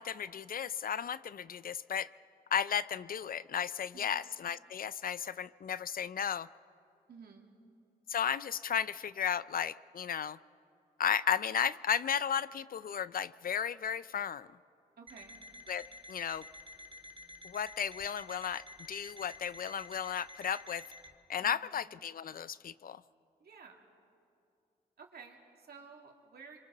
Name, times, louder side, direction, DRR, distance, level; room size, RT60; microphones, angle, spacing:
voice 1, 0.0-2.1 2.5-6.5 8.1-10.4 11.0-14.5 15.7-15.8 16.1-16.4 17.4-20.8 21.3-23.0, left 8 dB, 60° left, 18 dB, 0.5 m, -34 dB
voice 2, 7.1-7.5 15.0-15.4 21.4-21.7 23.4-23.8 25.0-26.6, right 5 dB, 65° right, 1 dB, 2.6 m, -53 dB
Alarm, 15.1-21.1, left 1 dB, 30° right, 1.8 m, -51 dB
26.5 x 23.5 x 4.1 m, 2.6 s
cardioid pair, 55°, 17 cm